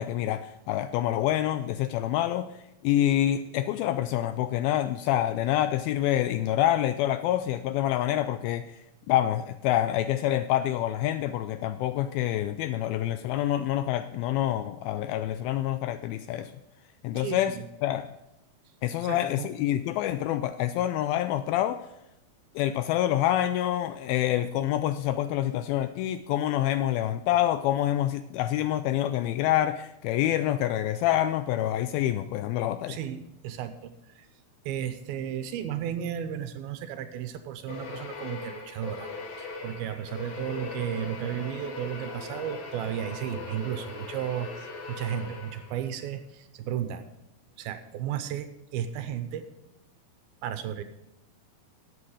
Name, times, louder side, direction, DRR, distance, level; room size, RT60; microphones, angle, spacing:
voice 1, 0.0-8.8 9.1-16.5 17.0-18.1 18.8-21.9 22.6-33.0, left 12 dB, 85° left, 2.2 m, -27 dB
voice 2, 17.2-17.7 19.0-19.5 32.9-34.3 34.7-39.1 39.4-47.0 47.6-49.4 50.4-50.8, right 10 dB, 80° right, 2.4 m, -34 dB
sound 1, 37.7-46.0, left 3 dB, 55° left, 2.7 m, -40 dB
13.0 x 8.8 x 4.9 m
omnidirectional pair, 4.7 m